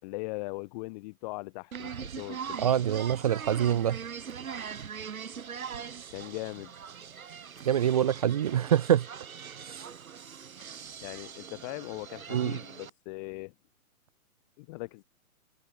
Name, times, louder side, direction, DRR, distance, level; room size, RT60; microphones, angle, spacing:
voice 1, 0.0-2.9 6.1-6.7 11.0-13.5 14.6-15.0, left 25 dB, 30° left, 7.7 m, -40 dB
sound 1, 1.7-12.9, right 7 dB, 75° right, 7.5 m, -41 dB
voice 2, 2.6-4.0 7.7-9.1 9.7-9.9 12.3-12.6, right 10 dB, 25° right, 0.6 m, -25 dB
hypercardioid pair, 160°, 42 cm